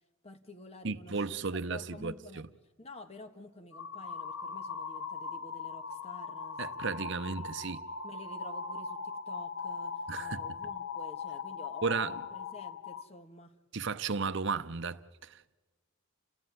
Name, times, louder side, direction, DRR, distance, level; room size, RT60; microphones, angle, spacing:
voice 1, 0.2-2.4 2.8-13.5, left 1 dB, 30° left, 1.5 m, -51 dB
voice 2, 0.8-2.5 6.6-7.8 10.1-10.4 11.8-12.1 13.7-15.6, right 4 dB, 60° right, 0.7 m, -34 dB
sound 1, 3.7-13.0, left 5 dB, 75° left, 1.0 m, -40 dB
29.5 x 15.5 x 9.5 m
head